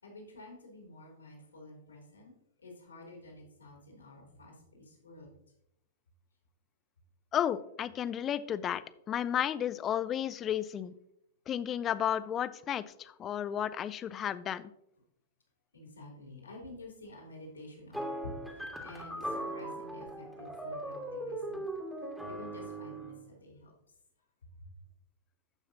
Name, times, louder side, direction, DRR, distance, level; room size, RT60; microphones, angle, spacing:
voice 1, 0.0-2.3 2.6-5.3 15.7-21.6 22.3-23.7 24.6-24.7, left 2 dB, 80° left, -1 dB, 3.1 m, -50 dB
voice 2, 7.3-8.8 9.1-10.9 11.5-14.7, left 10 dB, 25° left, 16 dB, 0.4 m, -33 dB
sound 1, 17.9-23.2, right 1 dB, ahead, 1.7 m, -39 dB
14.0 x 5.7 x 2.7 m, 0.78 s
figure-of-eight pair, 105°, 0 cm